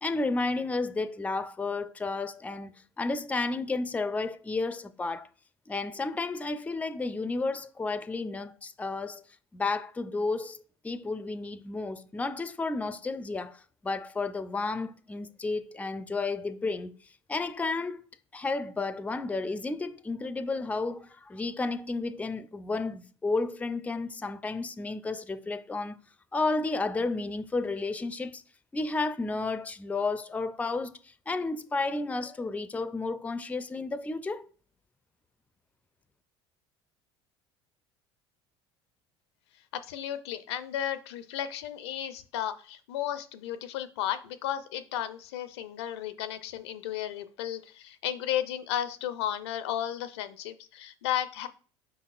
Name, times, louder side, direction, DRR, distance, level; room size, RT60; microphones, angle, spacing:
voice 1, 0.0-5.3 5.7-9.2 9.5-16.9 17.3-18.0 18.3-26.0 26.3-28.4 28.7-31.0 31.3-34.5, left 3 dB, 10° left, 0.4 m, -32 dB
voice 2, 39.7-51.5, left 11 dB, 75° left, 0.4 m, -34 dB
5.2 x 4.0 x 2.4 m
hypercardioid pair, 70°, 14 cm